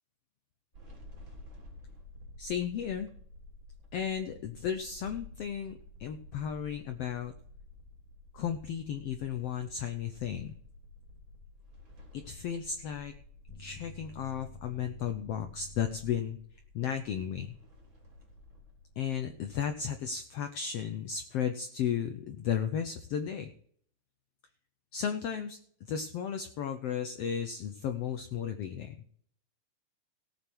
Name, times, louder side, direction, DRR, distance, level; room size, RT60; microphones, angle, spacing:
sound 1, 0.7-19.7, left 2 dB, 35° right, 3.9 m, -52 dB
voice 1, 2.4-3.1 3.9-7.3 8.3-10.5 12.1-13.1 13.6-16.4 16.7-17.5 19.0-23.5 24.9-25.6 25.9-29.0, left 8 dB, 80° left, 7 dB, 1.4 m, -34 dB
sound 2, 13.5-16.3, left 2 dB, 15° left, 1.0 m, -50 dB
17.5 x 7.5 x 4.6 m, 0.62 s
omnidirectional pair, 3.8 m